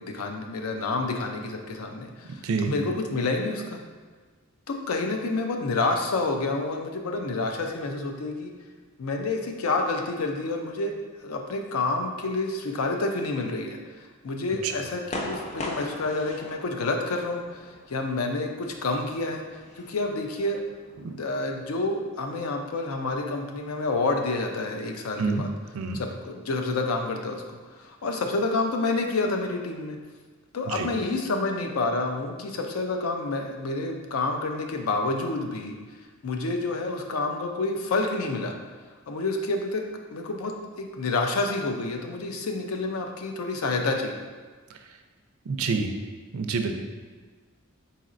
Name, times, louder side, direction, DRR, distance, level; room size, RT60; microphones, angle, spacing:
voice 1, 0.0-3.8 4.7-8.5 9.0-10.9 11.2-19.4 19.8-20.6 21.1-25.5 25.9-27.4 27.8-30.0 30.5-35.8 36.2-38.5 39.1-39.8 40.1-40.5 40.8-44.2, left 3 dB, 90° left, 3 dB, 0.5 m, -28 dB
sound 1, 15.1-21.1, left 1 dB, 30° left, 0.4 m, -40 dB
voice 2, 45.5-45.9 46.3-46.7, right 4 dB, 70° right, 5 dB, 0.4 m, -27 dB
4.2 x 3.9 x 2.5 m, 1.4 s
head